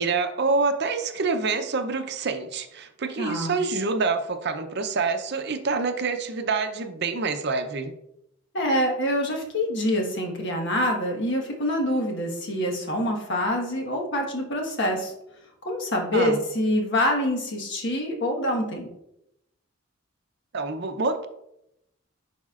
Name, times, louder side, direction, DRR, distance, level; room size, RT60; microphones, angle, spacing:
voice 1, 0.0-7.9 16.1-16.4 20.5-21.3, right 4 dB, 55° right, 8 dB, 0.6 m, -26 dB
voice 2, 3.2-3.6 8.5-15.1 15.6-18.9, left 1 dB, 60° left, 1 dB, 1.4 m, -26 dB
10.5 x 4.2 x 2.4 m, 0.82 s
head